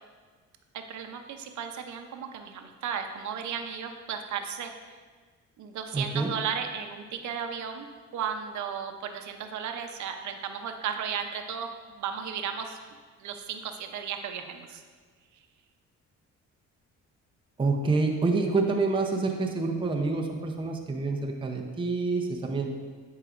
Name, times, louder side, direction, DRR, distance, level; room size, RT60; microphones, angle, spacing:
voice 1, 0.7-4.7 5.6-7.9 8.1-12.8 13.2-14.8, right 7 dB, 70° right, 5 dB, 0.7 m, -35 dB
voice 2, 5.9-6.3 17.6-22.7, right 3 dB, 15° right, 2 dB, 0.6 m, -27 dB
9.9 x 4.8 x 2.5 m, 1.5 s
cardioid pair, 90°, 30 cm